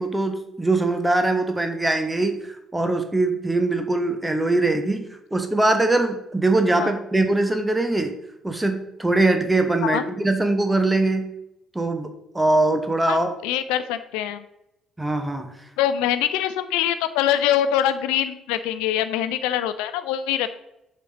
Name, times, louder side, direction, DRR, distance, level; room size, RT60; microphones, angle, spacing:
voice 1, 0.0-8.2 8.4-11.3 11.7-12.1 12.3-13.3 15.0-15.5, right 2 dB, 10° right, 6 dB, 0.9 m, -22 dB
voice 2, 13.4-14.4 15.8-20.5, left 11 dB, 65° left, 12 dB, 0.4 m, -24 dB
6.9 x 4.4 x 5.1 m, 0.84 s
figure-of-eight pair, 45°, 0 cm